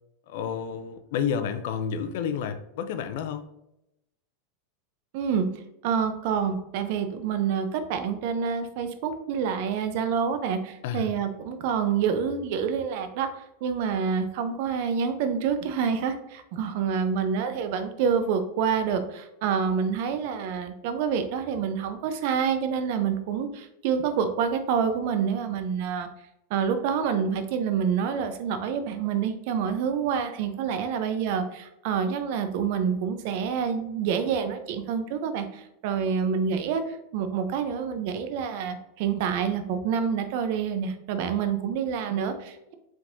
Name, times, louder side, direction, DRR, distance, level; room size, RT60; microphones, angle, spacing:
voice 1, 0.3-3.5 10.8-11.1, left 7 dB, 65° left, 9 dB, 0.5 m, -30 dB
voice 2, 5.1-5.5 5.8-13.3 13.6-26.1 26.5-42.7, right 7 dB, 60° right, 8 dB, 0.6 m, -27 dB
4.7 x 3.6 x 2.6 m, 0.85 s
hypercardioid pair, 120°, 0 cm